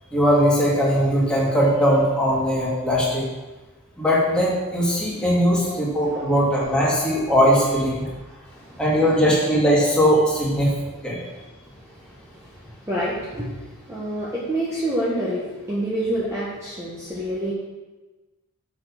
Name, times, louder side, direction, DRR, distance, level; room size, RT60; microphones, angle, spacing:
voice 1, 0.1-3.2 4.0-8.0 8.8-10.7 11.0-11.2, equal, 5° left, -6 dB, 2.4 m, -19 dB
voice 2, 8.1-8.8 11.2-17.5, right 1 dB, 15° right, -8 dB, 1.4 m, -29 dB
7.7 x 6.2 x 6.0 m, 1.2 s
head